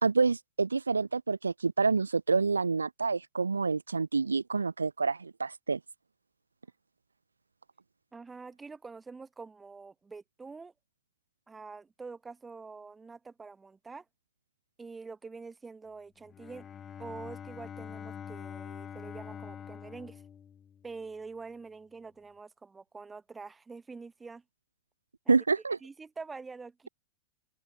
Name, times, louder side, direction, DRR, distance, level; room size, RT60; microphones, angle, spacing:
voice 1, 0.0-5.8 25.3-25.8, right 4 dB, 75° right, 0.3 m, -28 dB
voice 2, 8.1-10.7 11.5-14.0 14.8-16.7 17.0-20.2 20.8-24.4 25.2-25.4 25.8-26.9, right 4 dB, 15° right, 1.1 m, -46 dB
Bowed string instrument, 16.2-21.1, left 8 dB, 25° left, 1.9 m, -45 dB
open air
figure-of-eight pair, 90°, 0 cm